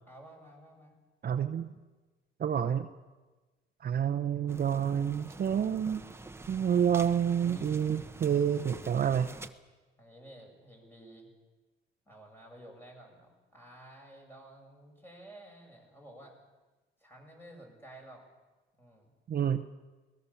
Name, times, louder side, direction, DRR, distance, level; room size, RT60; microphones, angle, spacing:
voice 1, 0.1-0.9 1.6-1.7 7.4-7.8 10.0-11.3 12.1-16.3 17.0-18.2 18.8-19.1, right 1 dB, 10° left, 1 dB, 7.4 m, -52 dB
voice 2, 1.2-1.7 2.4-2.9 3.8-6.0 6.5-9.3 19.3-19.6, right 8 dB, 50° right, 7 dB, 0.9 m, -28 dB
sound 1, 4.5-9.5, right 2 dB, 10° right, 1.2 m, -46 dB
22.0 x 19.0 x 7.2 m, 1.2 s
cardioid pair, 90°, 20 cm